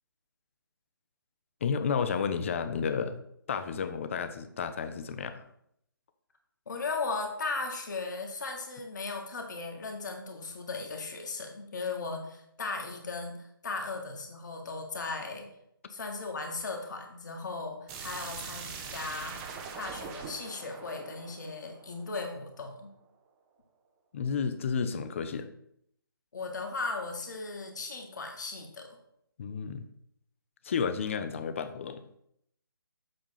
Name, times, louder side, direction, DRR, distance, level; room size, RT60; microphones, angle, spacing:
voice 1, 1.6-3.2 3.5-5.4 24.1-25.5 29.4-29.9 30.6-32.0, left 6 dB, 35° left, 10 dB, 0.6 m, -31 dB
voice 2, 6.7-15.5 15.9-19.4 19.8-22.9 26.3-28.9, left 3 dB, 50° left, 2 dB, 1.6 m, -37 dB
sound 1, 17.9-22.6, right 5 dB, 15° right, 0.6 m, -43 dB
7.7 x 3.6 x 5.6 m, 0.73 s
figure-of-eight pair, 145°, 12 cm